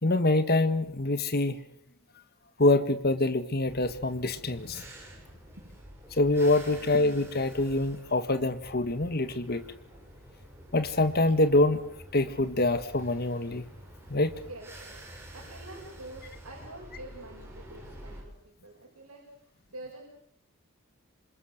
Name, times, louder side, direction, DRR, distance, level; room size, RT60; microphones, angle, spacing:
voice 1, 0.0-1.6 2.6-4.8 6.1-9.6 10.7-11.8 12.1-13.6 14.1-14.3, left 2 dB, 45° left, 9 dB, 1.6 m, -25 dB
sound 1, 3.7-18.2, right 1 dB, 10° right, 7.5 m, -48 dB
voice 2, 6.7-7.0 14.4-20.0, right 2 dB, 75° right, -2 dB, 6.9 m, -47 dB
27.5 x 26.0 x 6.7 m, 0.65 s
head